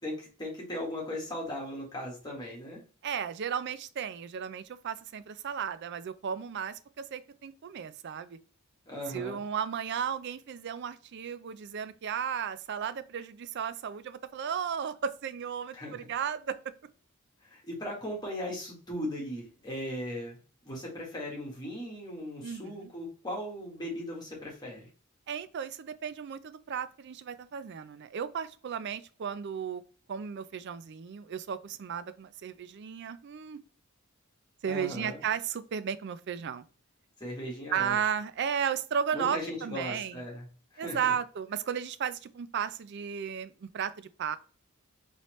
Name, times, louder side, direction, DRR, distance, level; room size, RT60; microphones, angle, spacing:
voice 1, 0.0-2.8 8.8-9.4 15.7-16.0 17.4-24.9 34.7-35.2 37.2-38.0 39.1-40.4 40.7-41.1, left 1 dB, 20° left, 1.7 m, -38 dB
voice 2, 3.0-8.4 9.1-16.6 22.4-22.9 25.3-29.8 30.1-33.6 34.6-36.6 37.7-40.2 40.8-44.4, right 7 dB, 55° right, 0.4 m, -34 dB
4.2 x 3.2 x 3.0 m
head